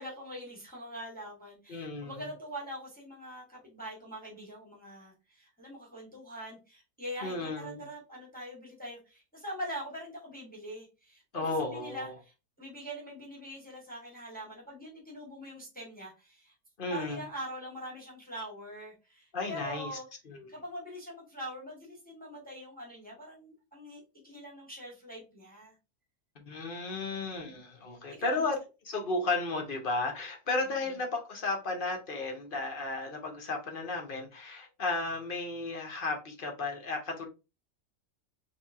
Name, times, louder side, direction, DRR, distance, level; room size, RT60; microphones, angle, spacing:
voice 1, 0.0-12.3 12.6-16.5 16.9-20.1 20.5-25.7 26.9-27.5 28.1-28.5, equal, 5° left, -3 dB, 1.3 m, -43 dB
voice 2, 1.7-2.3 7.2-7.9 11.3-12.1 16.8-17.2 19.3-19.9 20.3-20.5 26.4-28.6 28.9-37.3, left 3 dB, 40° left, 2 dB, 0.9 m, -34 dB
4.2 x 2.7 x 2.6 m, 0.28 s
omnidirectional pair, 1.6 m